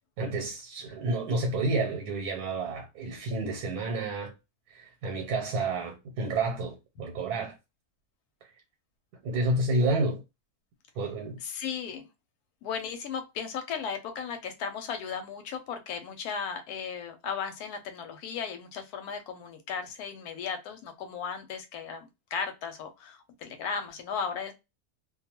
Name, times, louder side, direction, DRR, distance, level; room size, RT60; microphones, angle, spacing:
voice 1, 0.2-4.3 4.7-7.5 9.2-10.2 11.0-11.4, right 2 dB, 85° right, 1.2 m, -30 dB
voice 2, 11.4-12.0 12.6-24.5, left 6 dB, 90° left, 1.1 m, -36 dB
2.5 x 2.3 x 2.8 m
omnidirectional pair, 1.6 m